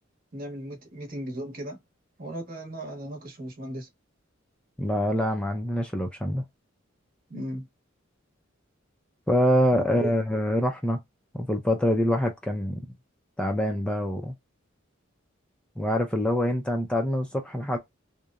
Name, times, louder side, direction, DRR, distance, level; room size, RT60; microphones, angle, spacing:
voice 1, 0.3-1.8 2.2-3.9 7.3-7.7 9.7-10.2, right 1 dB, 45° right, 0.9 m, -36 dB
voice 2, 4.8-6.4 9.3-11.0 11.3-12.8 13.4-14.3 15.8-17.8, equal, 5° left, 0.4 m, -25 dB
2.8 x 2.1 x 2.3 m
head